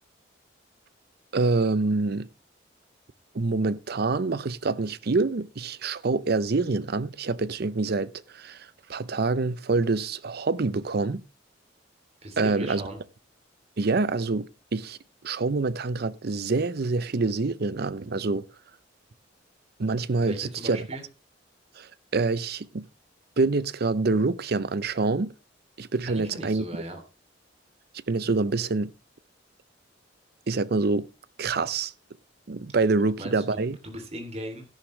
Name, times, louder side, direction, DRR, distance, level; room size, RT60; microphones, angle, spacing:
voice 1, 1.3-2.3 3.3-11.2 12.4-12.8 13.8-18.5 19.8-20.9 21.7-22.9 23.4-25.3 25.8-26.7 28.1-28.9 30.5-31.1 31.4-31.9 32.5-33.8, right 3 dB, 55° right, 0.6 m, -26 dB
voice 2, 12.2-13.0 20.2-21.0 26.1-27.0 33.2-34.6, right 1 dB, 35° right, 2.8 m, -38 dB
13.0 x 11.0 x 3.2 m
head